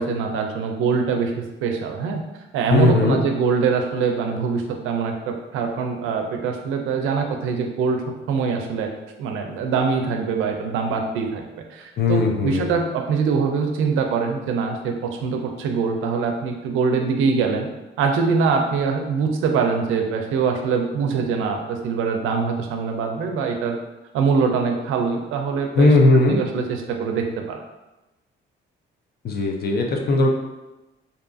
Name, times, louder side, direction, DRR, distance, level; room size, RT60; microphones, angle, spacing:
voice 1, 0.0-2.2 2.5-8.0 8.3-8.9 9.2-11.4 11.7-17.7 18.0-23.8 24.1-27.6, right 5 dB, 90° right, 4 dB, 0.4 m, -23 dB
voice 2, 2.7-3.2 12.0-12.7 25.8-26.4 29.2-30.3, left 2 dB, 50° left, 2 dB, 0.5 m, -18 dB
2.6 x 2.3 x 2.5 m, 1.0 s
cardioid pair, 90°, 20 cm